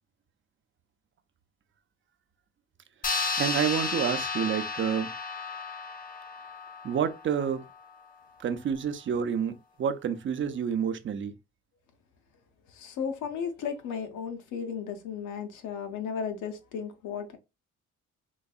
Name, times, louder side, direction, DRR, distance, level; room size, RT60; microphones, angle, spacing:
sound 1, 3.0-7.9, left 4 dB, 30° left, 0.5 m, -33 dB
voice 1, 3.4-5.1 6.8-7.6 8.4-11.3, right 8 dB, 40° right, 0.6 m, -29 dB
voice 2, 12.7-17.4, left 7 dB, 80° left, 0.7 m, -35 dB
3.9 x 2.6 x 2.3 m
cardioid pair, 90°, 30 cm